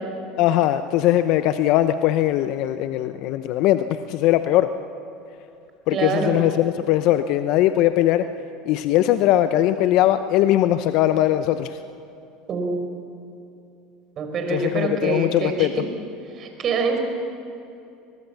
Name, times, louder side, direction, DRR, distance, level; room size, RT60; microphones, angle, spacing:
voice 1, 0.4-4.7 5.9-8.2 8.7-11.8 14.5-15.7, left 13 dB, 65° left, 10 dB, 0.8 m, -20 dB
voice 2, 5.9-6.4 12.5-12.8 14.2-15.8 16.3-17.0, right 4 dB, 45° right, 4 dB, 5.1 m, -25 dB
24.5 x 20.5 x 7.2 m, 2.7 s
hypercardioid pair, 90°, 0 cm